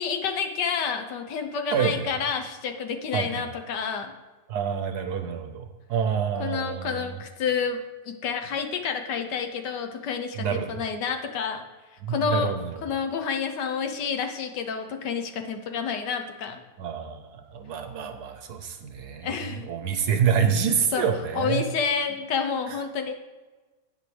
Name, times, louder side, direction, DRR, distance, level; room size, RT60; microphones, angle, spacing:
voice 1, 0.0-4.1 6.4-7.8 8.1-11.6 12.1-12.5 12.8-16.6 19.2-19.7 20.9-21.0 21.3-23.1, left 6 dB, 70° left, 6 dB, 1.4 m, -29 dB
voice 2, 1.7-2.1 3.1-3.4 4.5-7.2 10.4-10.8 12.0-12.8 16.8-21.6, right 7 dB, 65° right, 6 dB, 1.2 m, -27 dB
10.5 x 8.4 x 3.3 m, 1.3 s
omnidirectional pair, 2.0 m